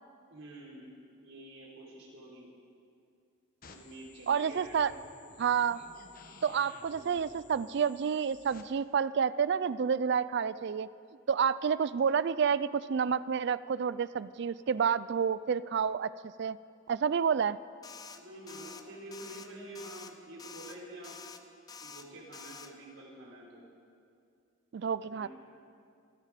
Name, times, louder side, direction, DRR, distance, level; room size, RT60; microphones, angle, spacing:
voice 1, 0.3-0.9 1.2-2.5 3.7-4.8 6.9-7.1 18.1-21.2 21.8-23.6 25.0-25.3, right 1 dB, 80° right, -3 dB, 4.1 m, -48 dB
sound 1, 3.6-8.6, left 4 dB, 45° left, 1.2 m, -55 dB
voice 2, 4.3-4.9 5.4-5.8 6.4-10.9 11.3-16.1 16.4-16.6 16.9-17.6 24.7-25.3, right 7 dB, 55° right, 17 dB, 0.3 m, -29 dB
sound 2, 17.8-18.2 18.5-18.8 19.1-19.5 19.7-20.1 20.4-20.8 21.0-21.4 21.7-22.0 22.3-22.7, left 5 dB, 20° left, 0.6 m, -47 dB
26.5 x 11.0 x 5.0 m, 2.4 s
head